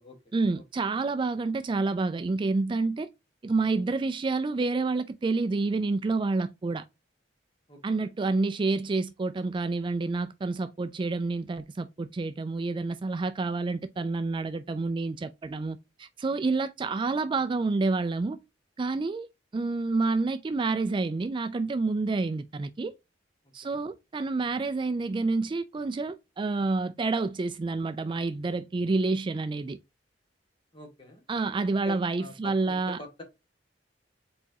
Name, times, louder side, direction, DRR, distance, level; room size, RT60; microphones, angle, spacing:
voice 1, 0.3-3.1 3.4-6.8 7.8-18.4 18.8-22.9 23.5-29.8 31.3-33.0, right 3 dB, 25° right, 0.3 m, -28 dB
voice 2, 7.7-8.1 23.6-23.8 30.7-31.2 31.7-33.2, left 3 dB, 30° left, 1.8 m, -45 dB
4.4 x 4.2 x 2.7 m
head